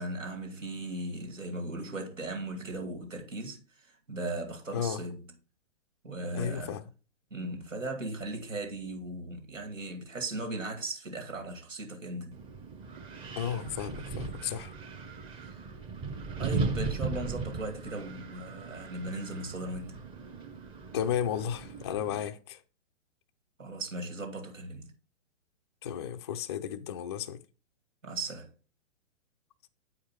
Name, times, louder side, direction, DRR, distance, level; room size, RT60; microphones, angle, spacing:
voice 1, 0.0-5.2 6.0-6.8 7.3-12.4 15.4-15.5 16.4-20.0 23.6-24.9 28.0-28.5, right 2 dB, 85° right, 2.4 m, -37 dB
voice 2, 6.3-6.8 13.4-14.7 20.9-22.6 25.8-27.4, left 9 dB, 25° left, 0.3 m, -33 dB
Wind, 12.3-22.3, right 4 dB, 15° right, 0.7 m, -38 dB
8.4 x 4.7 x 4.3 m
hypercardioid pair, 125°, 37 cm